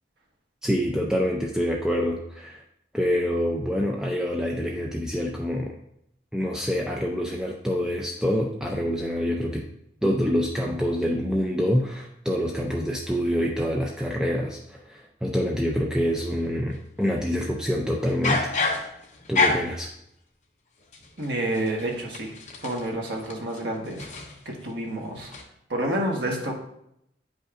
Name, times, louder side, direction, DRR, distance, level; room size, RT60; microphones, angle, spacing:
voice 1, 0.6-2.6 2.9-5.7 6.3-9.6 10.0-18.6 19.3-19.9, equal, 5° right, -1 dB, 0.4 m, -26 dB
sound 1, 16.2-16.8 18.0-19.9 20.9-24.7 25.0-25.4, left 3 dB, 40° left, 0.9 m, -29 dB
voice 2, 21.2-22.3 22.6-24.1 24.4-25.3 25.7-26.5, right 1 dB, 85° right, -1 dB, 1.4 m, -29 dB
9.3 x 5.2 x 2.5 m, 0.76 s
head